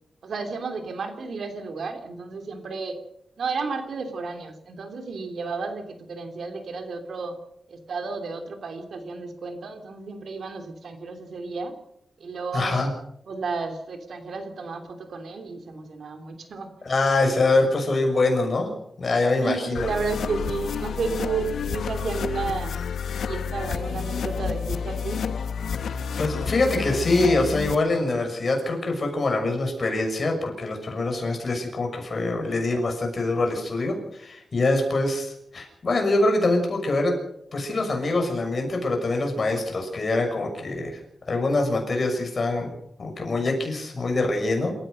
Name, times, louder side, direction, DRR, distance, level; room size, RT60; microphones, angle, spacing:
voice 1, 0.2-3.0 3.4-7.3 7.7-11.7 12.2-12.9 13.3-16.9 19.4-22.7 23.2-25.3, right 4 dB, 70° right, 6 dB, 3.2 m, -32 dB
voice 2, 12.5-12.9 16.8-18.7 19.0-19.9 26.2-37.2 37.5-41.0 41.3-42.7 43.0-44.7, left 2 dB, 40° left, 3 dB, 6.4 m, -24 dB
sound 1, 19.8-27.8, left 6 dB, 90° left, 1.3 m, -30 dB
27.5 x 15.0 x 6.5 m, 0.77 s
wide cardioid pair, 115°, 0 cm